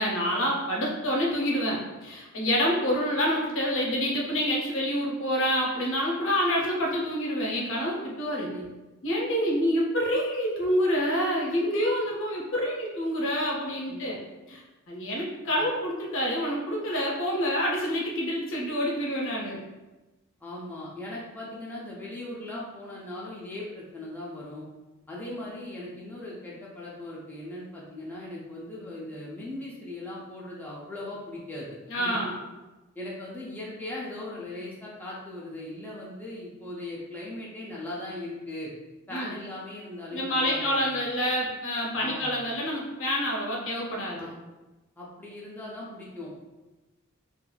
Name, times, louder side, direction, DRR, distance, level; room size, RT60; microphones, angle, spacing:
voice 1, 0.0-8.5 9.0-14.2 14.5-19.6 31.9-32.4 39.1-39.4 40.1-44.3, equal, 60° left, -2 dB, 0.6 m, -27 dB
voice 2, 20.4-24.7 25.1-32.2 33.0-38.7 39.1-41.0 41.9-42.3 44.1-44.4 45.0-46.3, left 1 dB, 10° left, -6 dB, 0.4 m, -39 dB
3.0 x 2.3 x 2.2 m, 1.1 s
head